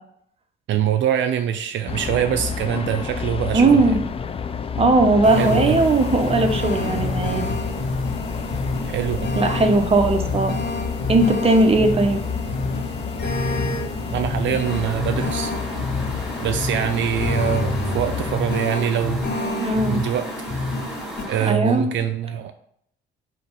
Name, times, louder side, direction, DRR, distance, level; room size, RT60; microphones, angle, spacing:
voice 1, 0.7-3.8 5.4-5.8 8.9-9.3 14.1-15.5 16.4-19.6 19.9-20.3 20.5-20.8 21.3-22.5, right 9 dB, 70° right, 8 dB, 0.4 m, -24 dB
sound 1, 1.9-18.4, left 6 dB, 30° left, 0.4 m, -30 dB
voice 2, 3.5-4.0 4.8-7.5 9.4-10.5 11.1-12.2 19.6-20.0 21.4-21.8, right 2 dB, 30° right, 4 dB, 0.9 m, -18 dB
sound 2, 5.2-21.2, left 2 dB, 60° left, 1.5 m, -28 dB
sound 3, 14.6-21.5, equal, ahead, 1.4 m, -36 dB
5.7 x 3.0 x 5.4 m, 0.71 s
cardioid pair, 90°, 20 cm